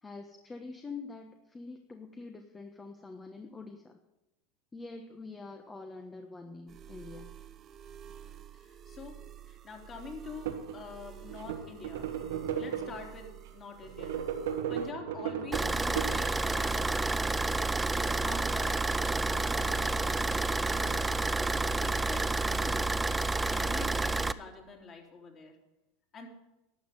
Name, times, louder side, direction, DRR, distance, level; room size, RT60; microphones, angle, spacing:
voice 1, 0.0-4.0 4.7-7.3, left 3 dB, 15° left, 5 dB, 1.2 m, -45 dB
sound 1, 6.7-14.9, right 9 dB, 35° right, 0.8 m, -50 dB
voice 2, 8.5-9.2 9.4-12.1 12.6-14.4 14.7-17.6 18.0-18.8 19.2-23.0 23.4-25.6 26.1-26.3, left 4 dB, 35° left, 2 dB, 3.4 m, -46 dB
sound 2, 10.2-10.8 11.2-13.2 13.8-16.6, right 8 dB, 85° right, 1.6 m, -35 dB
Car / Idling, 15.5-24.3, right 2 dB, 10° right, 0.5 m, -29 dB
12.0 x 7.2 x 9.7 m, 0.96 s
supercardioid pair, 110°, 0 cm